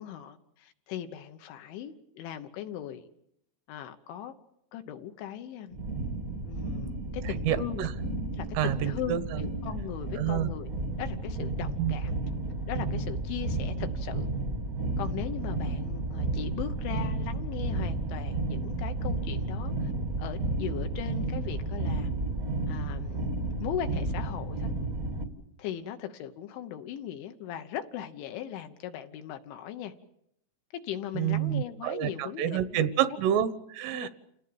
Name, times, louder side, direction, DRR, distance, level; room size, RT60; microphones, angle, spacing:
voice 1, 0.0-3.1 3.7-4.3 4.7-5.8 6.4-7.9 8.3-10.7 11.0-12.2 12.7-14.3 15.0-19.9 20.2-22.1 22.7-23.3 23.6-24.7 25.6-29.9 30.7-32.9 33.9-34.1, left 10 dB, 75° left, 7 dB, 3.3 m, -38 dB
sound 1, 5.7-25.2, right 2 dB, 55° right, 0.9 m, -32 dB
voice 2, 7.5-7.9 8.6-9.4 10.2-10.5 11.8-12.0 31.2-34.1, right 11 dB, 80° right, 13 dB, 3.5 m, -28 dB
29.0 x 18.0 x 8.7 m, 0.77 s
omnidirectional pair, 5.9 m